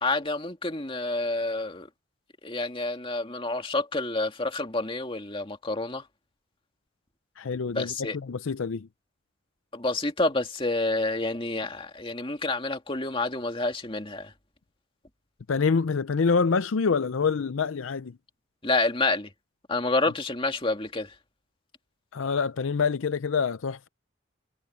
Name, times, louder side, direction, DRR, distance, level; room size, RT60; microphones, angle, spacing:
voice 1, 0.0-1.9 2.4-6.0 7.7-8.2 9.7-14.3 18.6-19.3 19.7-21.1, left 2 dB, 25° left, 2.2 m, -28 dB
voice 2, 7.4-8.9 15.5-18.2 22.1-23.9, left 5 dB, 75° left, 0.5 m, -26 dB
head